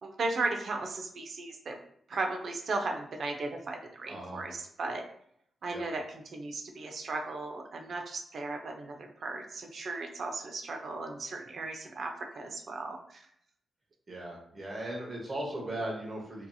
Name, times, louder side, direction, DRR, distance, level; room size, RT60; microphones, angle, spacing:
voice 1, 0.0-1.8 2.1-5.0 5.6-13.2, right 3 dB, 55° right, 3 dB, 0.4 m, -36 dB
voice 2, 4.1-4.4 5.7-5.8 14.1-16.5, right 1 dB, 30° right, -3 dB, 0.9 m, -37 dB
2.7 x 2.7 x 2.3 m, 0.69 s
wide cardioid pair, 125°, 0 cm